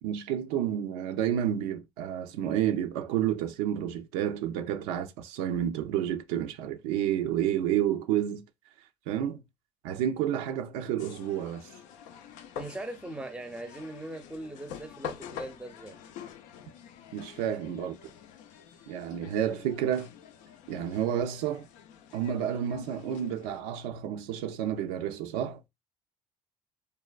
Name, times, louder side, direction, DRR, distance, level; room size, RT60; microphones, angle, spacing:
voice 1, 0.0-8.4 9.1-9.4 9.8-11.7 17.1-18.0 18.9-20.1 20.7-21.7 22.1-25.6, right 10 dB, 80° right, 0.4 m, -30 dB
sound 1, 11.0-23.6, left 8 dB, 75° left, 0.4 m, -46 dB
voice 2, 12.6-16.0 17.5-17.7, right 2 dB, 10° right, 0.6 m, -40 dB
3.3 x 2.2 x 2.3 m
supercardioid pair, 70°, 13 cm